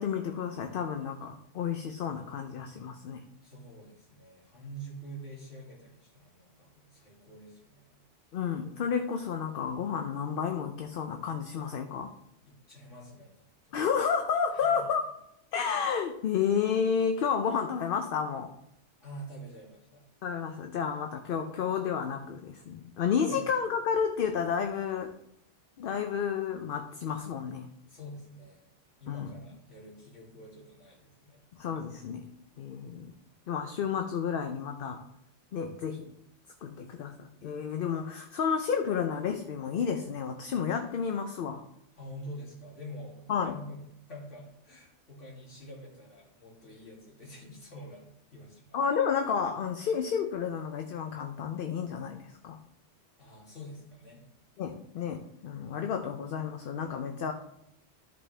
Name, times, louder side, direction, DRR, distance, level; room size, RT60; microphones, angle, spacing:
voice 1, 0.0-3.3 8.3-12.1 13.7-15.0 15.5-18.5 20.2-25.1 25.8-27.7 29.1-29.3 31.6-32.2 32.6-33.1 33.5-35.0 35.5-36.1 36.6-41.6 43.3-43.6 48.7-52.6 54.6-57.3, left 7 dB, 60° left, 6 dB, 0.7 m, -31 dB
voice 2, 3.4-8.0 12.5-13.3 13.7-13.8 14.5-14.9 19.0-20.0 23.3-23.4 27.9-28.6 29.0-31.4 42.0-43.2 43.4-43.8 44.1-48.0 48.3-48.8 53.2-54.2, equal, 80° left, -4 dB, 2.9 m, -46 dB
13.0 x 5.2 x 3.3 m, 0.79 s
omnidirectional pair, 1.2 m